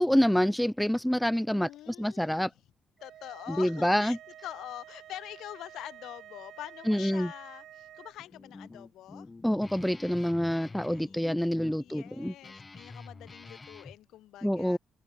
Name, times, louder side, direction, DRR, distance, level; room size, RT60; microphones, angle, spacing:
voice 1, 0.0-2.5 3.5-4.2 6.9-7.3 9.4-12.3 14.4-14.8, equal, 5° left, 0.6 m, -27 dB
voice 2, 1.5-2.5 3.0-4.2 4.4-9.3 10.9-11.2 11.8-14.8, left 14 dB, 85° left, 1.9 m, -45 dB
sound 1, 3.0-8.1, right 12 dB, 75° right, 1.7 m, -50 dB
Guitar, 8.2-14.0, left 3 dB, 30° left, 4.2 m, -48 dB
open air
cardioid pair, 70°, 0 cm